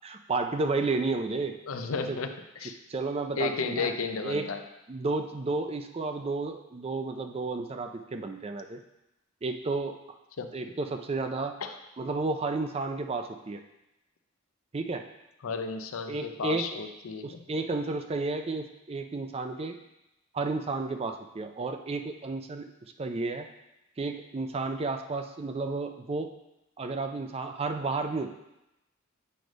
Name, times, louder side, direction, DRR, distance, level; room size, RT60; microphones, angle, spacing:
voice 1, 0.0-1.6 2.1-2.2 2.9-3.9 4.2-4.5 4.9-8.8 9.4-10.0 10.5-11.6 12.0-13.6 14.7-15.0 16.1-16.7 17.2-19.8 20.3-22.7 23.0-23.5 24.0-26.3 26.8-28.3, right 3 dB, 30° right, 6 dB, 0.4 m, -32 dB
voice 2, 1.7-2.3 2.6-2.7 3.4-4.6 10.4-10.5 11.6-11.8 15.4-17.4, left 4 dB, 90° left, 7 dB, 0.6 m, -33 dB
7.7 x 3.3 x 5.1 m, 0.90 s
head